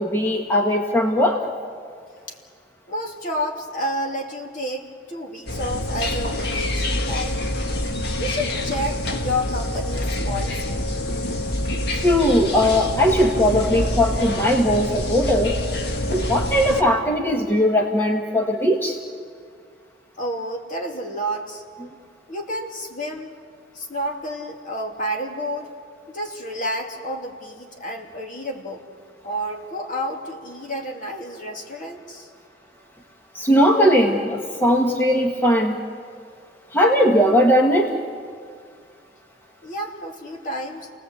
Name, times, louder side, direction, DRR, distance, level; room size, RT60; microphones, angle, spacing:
voice 1, 0.0-1.4 11.9-15.6 16.1-19.0 33.3-35.8 36.7-38.0, equal, 15° left, 1 dB, 1.4 m, -19 dB
voice 2, 2.9-7.4 8.2-10.8 20.2-21.6 22.3-23.4 23.7-25.7 26.1-28.8 29.2-32.3 39.6-40.9, equal, 50° left, 1 dB, 2.8 m, -30 dB
sound 1, 5.5-16.8, left 1 dB, 65° left, 1.8 m, -26 dB
29.5 x 18.5 x 8.2 m, 2.2 s
head